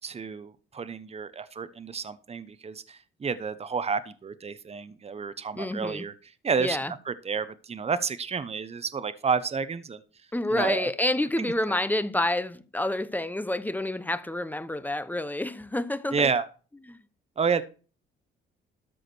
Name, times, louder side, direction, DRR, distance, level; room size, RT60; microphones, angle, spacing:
voice 1, 0.0-6.1 6.4-10.0 10.5-10.9 11.4-11.5 16.1-16.5 17.4-17.6, right 5 dB, 30° right, 1.0 m, -30 dB
voice 2, 5.5-6.0 6.6-6.9 10.3-16.3 16.9-17.0, left 1 dB, 10° left, 0.9 m, -28 dB
13.5 x 4.9 x 6.2 m
cardioid pair, 90°, 20 cm